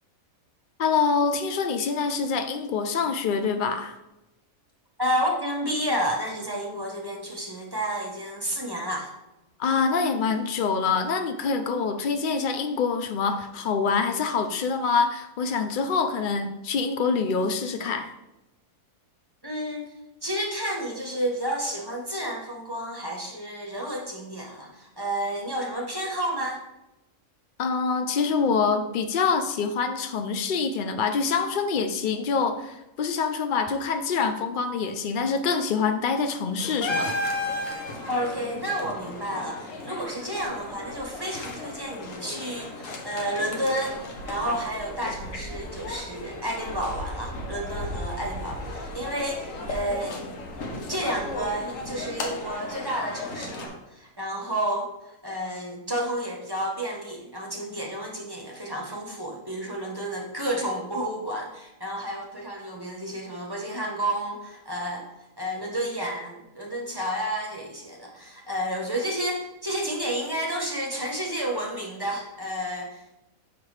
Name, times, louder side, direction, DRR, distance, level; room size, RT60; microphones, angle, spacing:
voice 1, 0.8-4.0 9.6-18.1 27.6-37.2, left 5 dB, 85° left, 8 dB, 0.4 m, -25 dB
voice 2, 5.0-9.1 19.4-19.9 20.2-26.6 38.1-50.2 50.9-65.0 65.4-73.2, right 1 dB, 20° right, 0 dB, 1.0 m, -31 dB
sound 1, 36.6-53.7, left 2 dB, 65° left, 1.3 m, -35 dB
7.0 x 5.8 x 3.2 m, 0.94 s
omnidirectional pair, 1.5 m